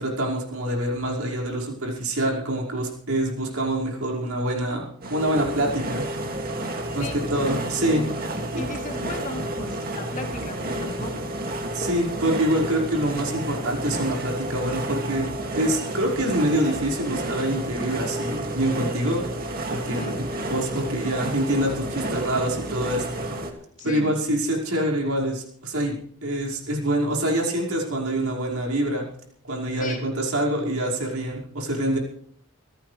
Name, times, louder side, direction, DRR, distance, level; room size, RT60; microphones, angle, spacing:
voice 1, 0.0-6.0 6.9-8.1 8.5-8.7 11.7-19.3 19.7-23.0 23.8-25.9 26.2-29.0 29.4-32.0, right 1 dB, 70° right, -2 dB, 5.2 m, -25 dB
sound 1, 5.0-23.5, right 1 dB, 40° right, 2.3 m, -31 dB
voice 2, 8.6-11.3 19.9-20.2 23.8-24.1 29.8-30.0, left 2 dB, 35° left, 2 dB, 2.8 m, -36 dB
27.0 x 14.5 x 3.3 m, 0.62 s
head